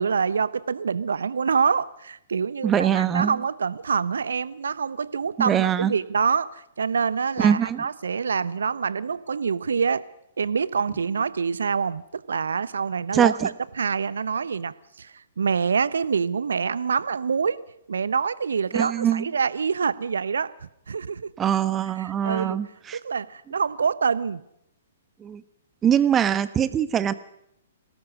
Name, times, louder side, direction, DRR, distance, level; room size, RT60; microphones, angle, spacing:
voice 1, 0.0-10.0 10.4-17.6 17.9-20.5 20.9-21.3 22.0-22.6 22.9-24.4, right 6 dB, 70° right, 18 dB, 0.9 m, -26 dB
voice 2, 2.6-3.4 5.4-5.9 7.4-7.8 13.1-13.5 18.7-19.3 21.4-23.0 25.2-25.4 25.8-27.1, right 9 dB, 20° right, 14 dB, 1.1 m, -22 dB
23.0 x 18.5 x 6.4 m, 0.79 s
figure-of-eight pair, 115°, 0 cm